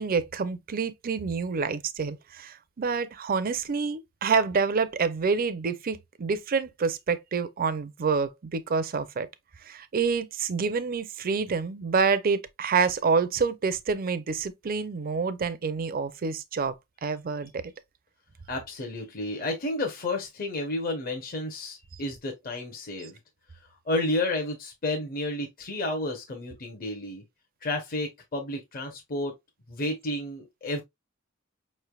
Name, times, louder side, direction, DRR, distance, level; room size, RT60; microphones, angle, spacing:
voice 1, 0.0-9.3 9.6-16.8 17.0-17.6, right 5 dB, 45° right, 0.5 m, -27 dB
voice 2, 18.5-23.2 23.9-27.2 27.6-29.3 29.7-30.8, left 2 dB, 45° left, 0.8 m, -31 dB
5.2 x 3.2 x 2.3 m
head